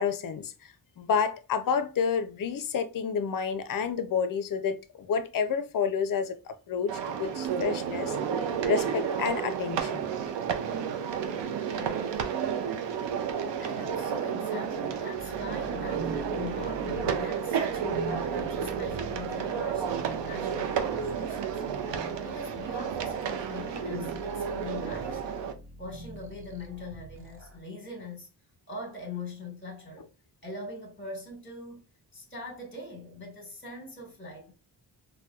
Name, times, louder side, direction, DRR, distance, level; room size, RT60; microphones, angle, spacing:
voice 1, 0.0-8.2 8.7-10.1, left 6 dB, 50° left, 0.5 m, -30 dB
sound 1, 6.9-25.5, right 7 dB, 85° right, 0.5 m, -31 dB
voice 2, 11.7-12.4 13.6-21.6 22.2-25.4 25.8-28.3 28.7-30.1 30.4-31.8 32.1-34.5, left 2 dB, 25° left, 1.2 m, -41 dB
sound 2, 15.1-27.6, right 1 dB, 30° right, 0.6 m, -45 dB
4.1 x 2.2 x 2.3 m
wide cardioid pair, 95°, 42 cm